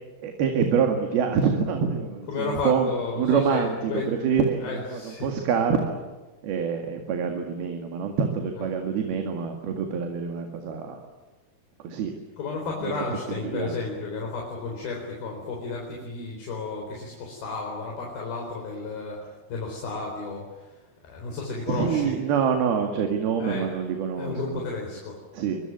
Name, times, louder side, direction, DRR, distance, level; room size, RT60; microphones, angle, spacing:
voice 1, 0.2-2.9 3.2-6.0 6.4-11.0 11.8-12.1 12.8-12.9 13.4-13.7 21.7-24.6 25.3-25.6, right 6 dB, 70° right, 4 dB, 3.9 m, -26 dB
voice 2, 2.3-4.1 4.6-5.3 8.6-8.7 12.4-20.7 21.0-22.2 23.4-23.7 24.2-25.2, left 3 dB, 65° left, -1 dB, 6.1 m, -32 dB
25.0 x 22.5 x 9.4 m, 1.2 s
omnidirectional pair, 4.7 m